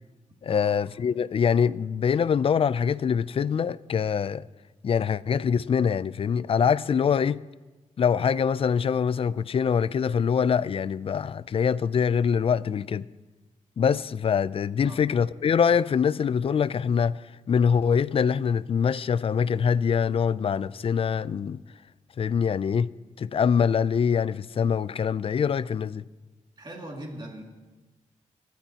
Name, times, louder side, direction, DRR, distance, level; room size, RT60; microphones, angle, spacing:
voice 1, 0.4-4.5 4.8-7.4 8.0-13.1 13.8-17.2 17.5-21.6 22.2-22.9 23.2-26.0, left 7 dB, 45° left, 0.4 m, -24 dB
voice 2, 26.6-27.4, right 1 dB, 35° right, 2.4 m, -40 dB
29.0 x 11.5 x 2.9 m
wide cardioid pair, 115°, 13 cm